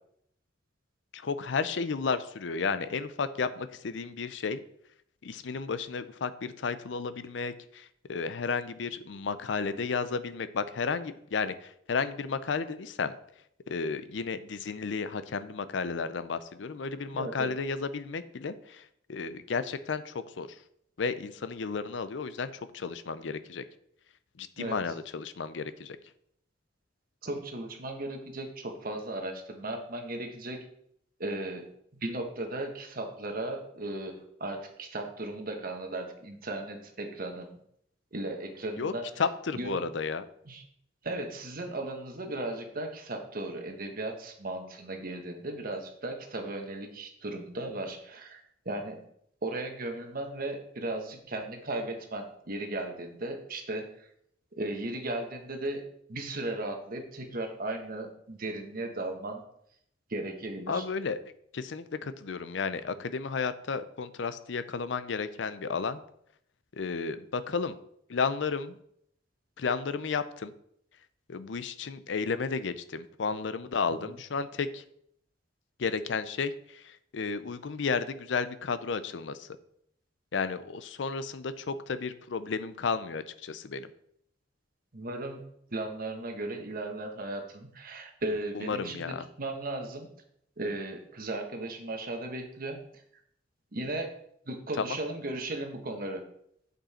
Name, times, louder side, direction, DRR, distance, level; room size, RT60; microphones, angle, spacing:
voice 1, 1.1-4.6 5.2-13.1 13.7-20.6 21.0-23.6 24.4-26.0 38.8-40.3 60.7-61.2 61.5-66.0 66.7-67.8 68.1-68.8 69.6-70.5 71.3-74.8 75.8-79.5 80.3-83.9 88.6-89.3 94.8-95.0, left 5 dB, 75° left, 13 dB, 0.5 m, -33 dB
voice 2, 17.1-17.5 24.6-24.8 27.2-30.6 31.2-37.6 38.1-39.0 39.5-39.8 40.4-40.6 41.0-49.0 49.4-54.1 54.6-55.8 56.1-59.4 60.1-60.8 74.0-74.2 84.9-85.4 85.7-90.1 90.6-93.0 93.7-94.1 94.5-96.2, right 2 dB, 50° right, 4 dB, 1.3 m, -36 dB
8.8 x 5.4 x 4.3 m, 0.71 s
head